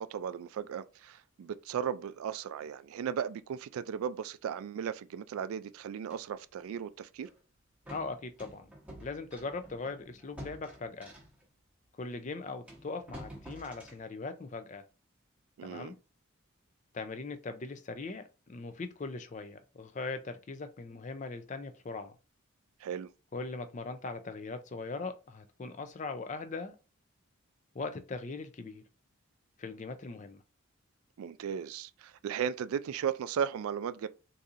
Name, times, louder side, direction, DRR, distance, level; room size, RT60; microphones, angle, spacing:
voice 1, 0.0-7.3 15.6-15.9 22.8-23.1 31.2-34.1, right 8 dB, 85° right, 0.3 m, -36 dB
sound 1, 6.1-6.3 7.2-7.4 7.9-11.5 12.1-12.2 12.7-14.0, equal, 5° right, 0.9 m, -49 dB
voice 2, 7.9-8.7 9.0-11.1 12.0-14.9 15.6-16.0 16.9-22.2 23.3-26.8 27.7-28.8 29.6-30.4, left 3 dB, 35° left, 0.4 m, -40 dB
4.0 x 2.7 x 2.5 m
head